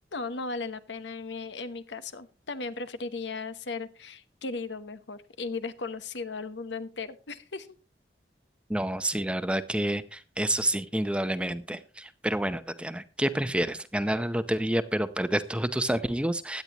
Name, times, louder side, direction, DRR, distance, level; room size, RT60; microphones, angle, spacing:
voice 1, 0.1-7.7, left 3 dB, 85° left, 12 dB, 1.0 m, -36 dB
voice 2, 8.7-16.6, right 1 dB, 5° right, 12 dB, 0.6 m, -29 dB
16.5 x 10.5 x 3.0 m, 0.32 s
head